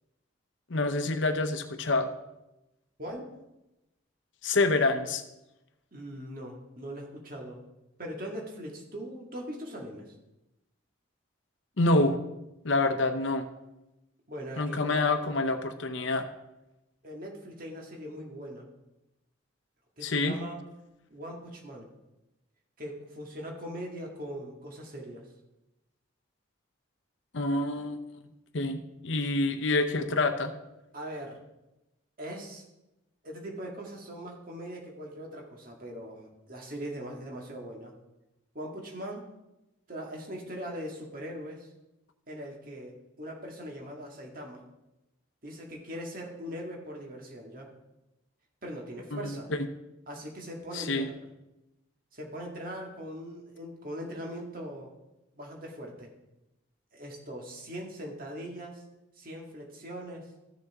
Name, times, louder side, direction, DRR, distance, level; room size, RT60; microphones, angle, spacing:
voice 1, 0.7-2.1 4.4-5.2 11.8-12.2 12.6-13.5 14.6-16.3 20.0-20.3 27.3-28.0 28.5-30.5 49.1-49.7 50.7-51.1, left 2 dB, 70° left, 8 dB, 0.8 m, -27 dB
voice 2, 3.0-3.3 5.9-7.6 8.0-10.1 14.3-15.2 17.0-18.7 20.0-20.6 21.1-21.9 22.8-25.3 30.9-31.4 32.2-32.6 33.2-37.9 38.5-39.2 39.9-41.7 42.3-44.6 45.4-47.7 48.6-49.5 50.1-51.2 52.1-54.9 55.4-56.1 56.9-58.8 59.2-60.3, equal, 45° right, 0 dB, 1.9 m, -40 dB
14.0 x 6.7 x 3.6 m, 0.95 s
head